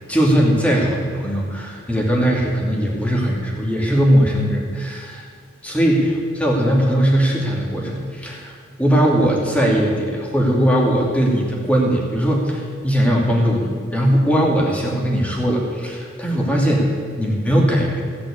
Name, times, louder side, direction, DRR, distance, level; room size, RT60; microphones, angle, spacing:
voice 1, 0.1-5.3 5.6-8.5 8.8-18.0, equal, 5° left, -2 dB, 2.5 m, -19 dB
16.5 x 6.0 x 8.5 m, 2.1 s
head